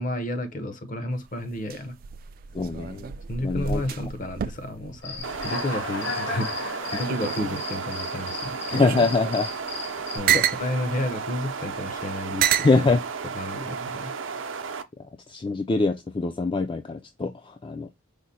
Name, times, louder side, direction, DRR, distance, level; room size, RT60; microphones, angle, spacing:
voice 1, 0.0-1.9 3.3-8.6 10.1-12.8 13.4-14.1, left 1 dB, 45° left, 0.8 m, -31 dB
sound 1, 1.1-6.2 6.6-7.8 8.4-10.7 11.5-11.6 12.4-12.8 13.6-14.0, right 9 dB, 50° right, 0.3 m, -29 dB
voice 2, 2.5-3.1 3.4-3.8 8.7-9.5 10.3-10.4 12.6-13.0 15.3-17.9, left 3 dB, 25° left, 0.4 m, -24 dB
Human voice / Cricket, 5.0-10.2, left 3 dB, 65° left, 2.0 m, -35 dB
sound 2, 5.2-14.8, right 5 dB, 90° right, 0.6 m, -34 dB
5.0 x 2.1 x 4.1 m
head